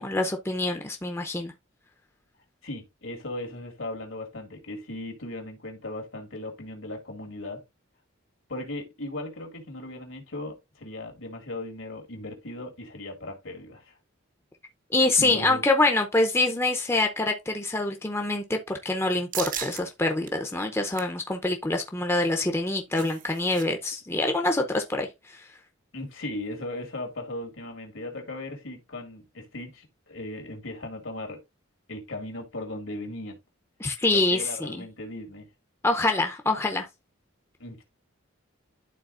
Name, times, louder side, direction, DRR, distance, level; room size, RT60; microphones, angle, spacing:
voice 1, 0.0-1.5 14.9-25.1 33.8-34.8 35.8-36.9, left 2 dB, 10° left, 0.6 m, -25 dB
voice 2, 2.6-7.6 8.5-13.9 15.2-15.6 25.9-31.4 31.9-33.4 34.1-35.5 37.6-37.8, left 1 dB, 75° left, 2.0 m, -37 dB
sound 1, 19.3-19.8 20.3-20.4 20.7-21.2 22.5-23.7 23.9-24.0 24.4-24.6, right 9 dB, 40° right, 0.6 m, -36 dB
11.5 x 3.9 x 2.5 m
head